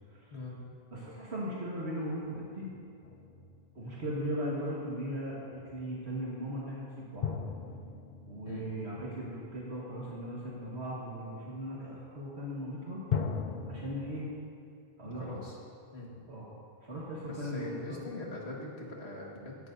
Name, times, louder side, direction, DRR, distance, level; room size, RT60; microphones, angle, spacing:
voice 1, 0.3-0.7 2.6-2.7 8.5-8.7 15.0-15.6 15.9-16.1 17.3-19.6, left 2 dB, 65° left, -3 dB, 2.0 m, -42 dB
voice 2, 0.9-2.7 3.7-7.3 8.3-13.0 13.7-14.3 15.0-15.4 16.3-16.5 16.8-18.0, equal, 65° right, -6 dB, 1.9 m, -38 dB
sound 1, 3.0-4.4 7.2-9.8 13.1-14.1, left 6 dB, 50° left, 0.7 m, -37 dB
17.0 x 11.0 x 2.7 m, 2.4 s
omnidirectional pair, 1.2 m